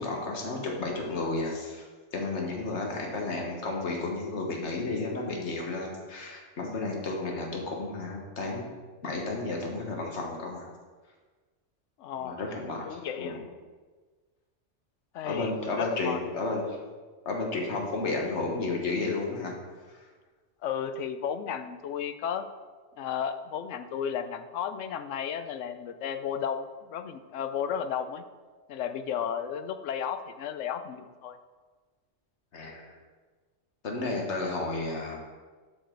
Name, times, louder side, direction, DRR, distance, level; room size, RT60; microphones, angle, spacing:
voice 1, 0.0-1.8 2.1-8.7 9.0-10.7 12.2-13.4 15.2-16.8 17.2-19.5 19.9-20.1 32.5-32.8 33.8-35.2, left 3 dB, 70° left, 0 dB, 1.6 m, -32 dB
voice 2, 12.0-12.4 12.8-13.4 15.1-16.2 20.6-22.5 23.0-28.2 28.7-31.4, left 8 dB, 85° left, 9 dB, 1.0 m, -33 dB
12.0 x 5.1 x 3.8 m, 1.4 s
omnidirectional pair, 1.2 m